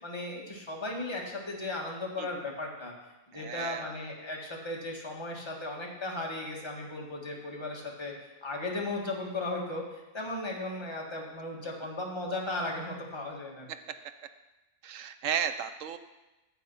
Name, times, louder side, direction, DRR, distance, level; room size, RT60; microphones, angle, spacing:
voice 1, 0.0-2.9 3.3-8.1 8.4-9.8 10.1-13.6, left 2 dB, 20° left, -2 dB, 1.7 m, -36 dB
voice 2, 3.3-3.9 14.8-16.0, right 8 dB, 70° right, 10 dB, 0.9 m, -33 dB
9.2 x 7.6 x 5.5 m, 1.0 s
omnidirectional pair, 1.5 m